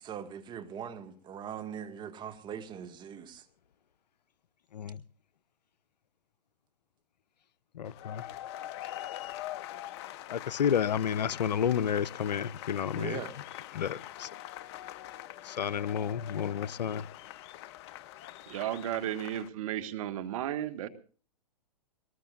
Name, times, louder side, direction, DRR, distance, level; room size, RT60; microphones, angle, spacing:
voice 1, 0.0-3.4 12.9-13.3, right 8 dB, 20° right, 1.9 m, -41 dB
voice 2, 7.8-8.2 10.3-13.2 13.7-14.3 15.5-17.1, left 8 dB, 80° left, 0.7 m, -31 dB
sound 1, 7.8-19.5, left 14 dB, 40° left, 0.8 m, -43 dB
voice 3, 18.5-20.9, right 11 dB, 55° right, 1.7 m, -34 dB
22.0 x 19.5 x 2.5 m
hypercardioid pair, 130°, 21 cm